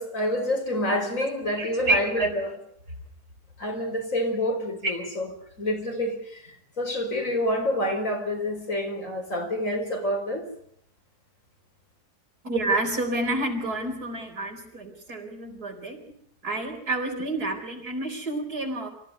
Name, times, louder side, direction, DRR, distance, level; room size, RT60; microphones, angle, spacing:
voice 1, 0.0-2.5 3.6-5.3 5.6-10.4, left 1 dB, 55° left, 4.9 m, -28 dB
voice 2, 1.6-2.3 4.8-5.0 12.4-16.0 16.4-18.9, right 2 dB, 90° right, 4.9 m, -28 dB
25.0 x 15.0 x 9.7 m
omnidirectional pair, 1.6 m